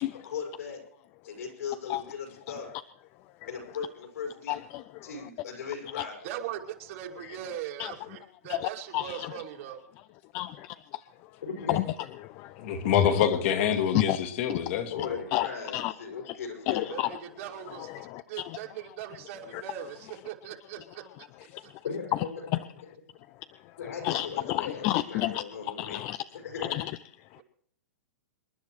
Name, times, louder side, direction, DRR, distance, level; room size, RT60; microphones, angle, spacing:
voice 1, 0.1-0.8 1.3-2.7 3.5-4.6 5.0-6.2 11.4-11.9 13.5-13.7 14.9-17.0 21.8-22.3 23.8-26.0 26.4-26.8, left 6 dB, 80° left, 5.6 m, -38 dB
voice 2, 4.5-5.1 7.2-7.4 7.8-7.9 8.5-9.4 10.3-11.0 11.7-11.8 12.2-13.0 13.9-14.2 14.5-14.6 15.3-15.5 15.7-15.9 16.3-16.4 16.7-17.1 17.7-18.6 19.5-19.6 21.5-21.6 24.0-26.2 26.6-26.9, left 15 dB, 35° left, 0.4 m, -31 dB
voice 3, 6.2-9.8 16.9-21.0 21.6-21.7 27.4-27.5, right 10 dB, 55° right, 2.6 m, -40 dB
voice 4, 12.6-15.2, left 8 dB, 55° left, 2.0 m, -26 dB
27.0 x 10.5 x 3.2 m
hypercardioid pair, 135°, 8 cm